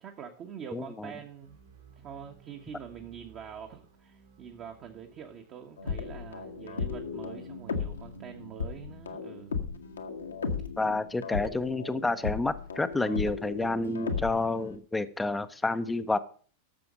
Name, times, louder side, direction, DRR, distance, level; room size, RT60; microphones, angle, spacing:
voice 1, 0.0-1.6 2.0-9.6 10.8-11.0, right 8 dB, 35° right, 1.3 m, -45 dB
voice 2, 0.7-1.1 10.8-16.2, left 2 dB, 10° left, 0.8 m, -29 dB
sound 1, 1.2-11.3, right 7 dB, 65° right, 3.5 m, -60 dB
sound 2, 5.8-14.8, left 5 dB, 70° left, 1.4 m, -36 dB
13.0 x 7.0 x 5.0 m
figure-of-eight pair, 90°, 0 cm